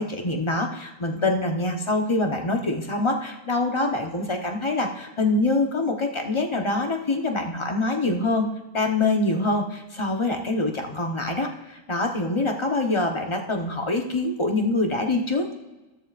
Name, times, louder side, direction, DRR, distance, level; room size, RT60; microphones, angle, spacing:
voice 1, 0.0-8.5 8.7-15.6, left 2 dB, 25° left, 3 dB, 0.8 m, -25 dB
13.5 x 13.5 x 2.5 m, 1.1 s
omnidirectional pair, 1.5 m